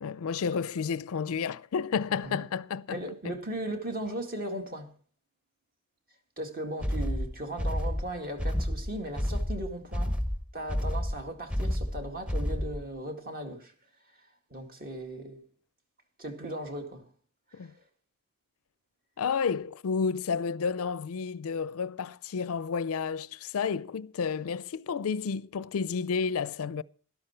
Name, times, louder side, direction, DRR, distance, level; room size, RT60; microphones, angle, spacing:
voice 1, 0.0-3.0 3.2-3.4 17.5-17.7 19.2-26.8, left 6 dB, 65° left, 0.4 m, -31 dB
voice 2, 2.9-4.9 6.4-10.2 10.5-13.7 14.2-15.4 16.2-17.1 17.5-17.7, right 1 dB, 40° right, 2.1 m, -37 dB
sound 1, 6.8-12.9, equal, 5° right, 0.8 m, -30 dB
12.5 x 12.0 x 4.4 m
head